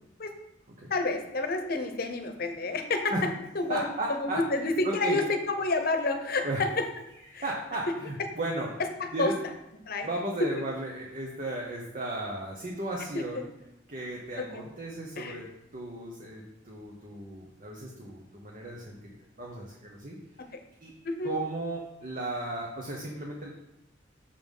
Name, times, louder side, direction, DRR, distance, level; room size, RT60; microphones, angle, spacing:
voice 1, 0.9-3.3 3.5-3.8 4.1-6.9 7.3-7.4 9.0-9.3 9.9-10.1 10.4-10.5 13.1-13.5 14.4-14.7 15.2-15.4 20.4-20.6 21.0-21.3, left 2 dB, 50° left, 6 dB, 0.9 m, -29 dB
voice 2, 3.7-4.4 4.8-5.2 6.4-6.6 7.3-8.7 9.1-9.3 10.0-13.4 13.9-15.5 15.7-19.0 19.4-20.2 20.8-20.9 21.2-23.5, right 2 dB, 40° right, -2 dB, 1.2 m, -35 dB
6.8 x 5.6 x 5.5 m, 0.86 s
head